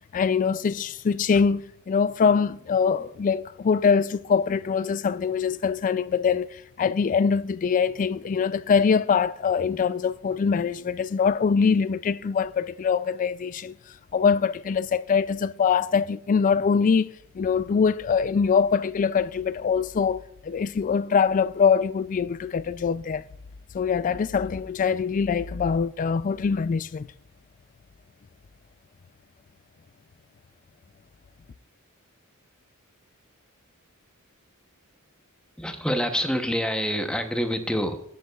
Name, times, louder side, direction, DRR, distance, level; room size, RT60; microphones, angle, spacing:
voice 1, 0.1-13.8 14.1-17.1 17.3-23.2 23.7-27.1, left 6 dB, 40° left, 0.3 m, -23 dB
voice 2, 35.6-38.0, equal, 5° left, 0.8 m, -26 dB
16.5 x 8.3 x 2.3 m
head